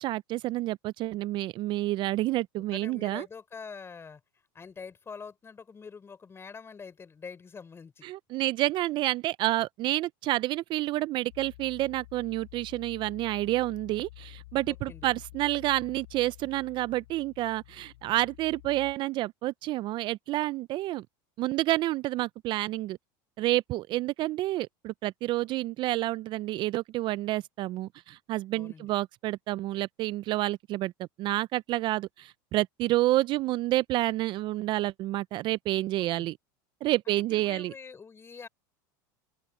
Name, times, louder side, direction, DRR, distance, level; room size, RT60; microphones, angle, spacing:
voice 1, 0.0-3.3 8.0-21.1 21.4-23.0 23.4-36.3 36.8-37.7, right 16 dB, 45° right, 0.4 m, -29 dB
voice 2, 2.7-4.2 4.5-8.1 14.7-15.1 28.5-28.9 36.0-36.3 37.1-38.5, left 5 dB, 20° left, 5.9 m, -45 dB
sound 1, 11.3-18.9, left 20 dB, 75° left, 4.6 m, -50 dB
open air
supercardioid pair, 105°, 11 cm